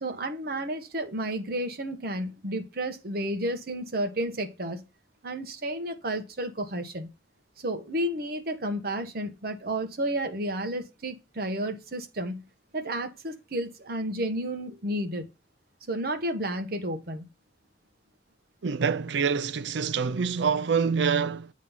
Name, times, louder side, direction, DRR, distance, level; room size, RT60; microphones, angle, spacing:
voice 1, 0.0-4.8 5.2-7.1 7.6-12.4 12.7-15.3 15.9-17.3, right 1 dB, 55° right, 1.1 m, -31 dB
voice 2, 18.6-21.5, right 6 dB, 75° right, 0.5 m, -26 dB
8.5 x 3.1 x 5.5 m
head